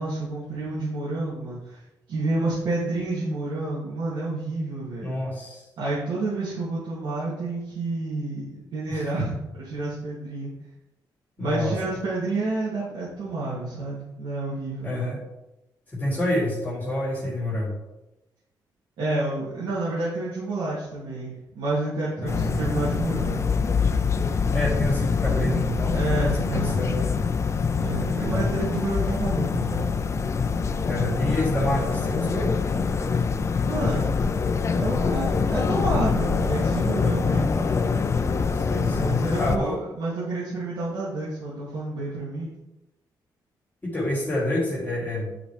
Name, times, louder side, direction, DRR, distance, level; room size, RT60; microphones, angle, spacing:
voice 1, 0.0-1.8 2.1-5.2 5.8-10.5 11.4-15.1 19.0-23.5 25.9-26.8 27.7-29.9 33.6-34.1 34.7-37.5 38.9-42.5, right 2 dB, 90° right, -9 dB, 2.6 m, -29 dB
voice 2, 5.0-5.7 8.9-9.1 11.4-11.8 14.8-15.2 15.9-17.7 22.2-22.5 24.5-27.1 28.1-28.5 30.8-32.5 38.5-39.8 43.8-45.3, left 1 dB, 20° left, -7 dB, 2.8 m, -28 dB
sound 1, 22.3-39.6, left 5 dB, 35° left, 0.5 m, -24 dB
10.0 x 5.2 x 3.3 m, 0.97 s
cardioid pair, 120°, 8 cm